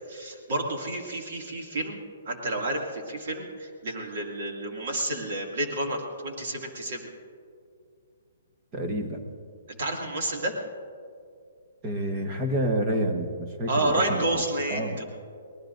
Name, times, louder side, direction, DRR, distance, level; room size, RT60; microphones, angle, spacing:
voice 1, 0.1-2.0 2.3-7.0 9.7-10.6 13.7-15.0, right 1 dB, 50° right, 1 dB, 2.4 m, -30 dB
voice 2, 8.7-9.3 11.8-14.4 14.7-15.0, right 1 dB, 20° right, 3 dB, 1.2 m, -29 dB
24.5 x 19.0 x 2.6 m, 2.3 s
hypercardioid pair, 175°, 0 cm